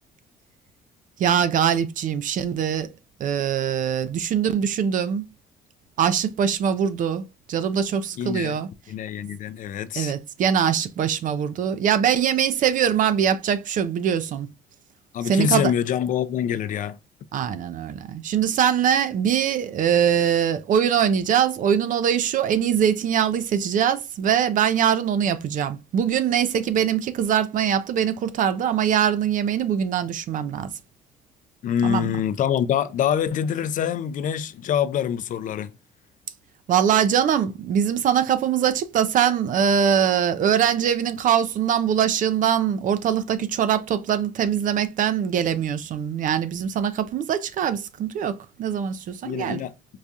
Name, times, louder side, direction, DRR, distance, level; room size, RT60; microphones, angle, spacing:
voice 1, 1.2-2.9 3.2-5.2 6.0-8.7 10.0-14.5 15.3-15.7 17.3-30.7 31.8-32.1 36.7-49.6, right 8 dB, 50° right, 0.4 m, -22 dB
voice 2, 8.1-8.6 8.9-10.1 15.1-17.0 31.6-35.7 49.2-49.7, left 9 dB, 50° left, 0.4 m, -25 dB
4.7 x 2.3 x 2.6 m
cardioid pair, 110°, 17 cm